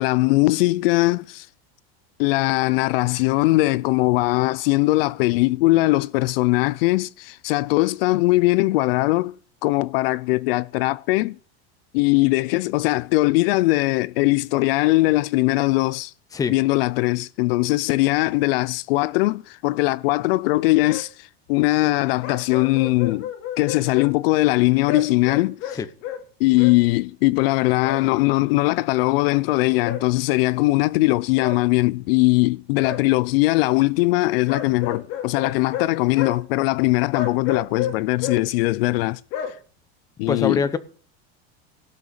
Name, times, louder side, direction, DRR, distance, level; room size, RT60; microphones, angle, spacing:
voice 1, 0.0-1.5 2.2-9.3 9.6-11.4 11.9-16.1 16.5-23.3 23.6-25.8 26.4-39.2 40.2-40.7, left 21 dB, 65° left, 0.5 m, -20 dB
sound 1, 20.5-20.6 20.9-21.0 22.2-24.1 24.9-26.2 26.6-26.7 27.8-28.0 29.8-30.0 31.4-31.6 32.8-33.0 34.5-35.9 36.1-36.4 37.1-38.4 39.3-39.5, left 9 dB, 40° left, 2.8 m, -30 dB
voice 2, 40.3-40.8, left 5 dB, 10° left, 0.7 m, -23 dB
17.0 x 6.4 x 7.2 m
supercardioid pair, 175°, 32 cm